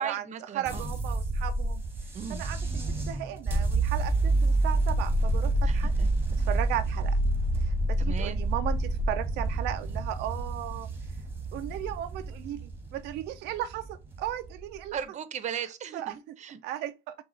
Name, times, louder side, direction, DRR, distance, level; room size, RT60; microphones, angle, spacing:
voice 1, 0.0-0.9 2.1-2.4 5.6-6.1 8.0-8.4 14.9-16.6, right 7 dB, 45° right, 0.7 m, -37 dB
voice 2, 0.5-1.8 2.3-2.6 3.1-5.9 6.3-7.2 7.6-10.9 11.5-15.0 15.9-16.4 16.6-17.2, right 12 dB, 90° right, 0.4 m, -36 dB
sound 1, 0.6-14.8, right 2 dB, 15° right, 1.2 m, -28 dB
5.9 x 2.3 x 3.8 m
cardioid pair, 110°, 17 cm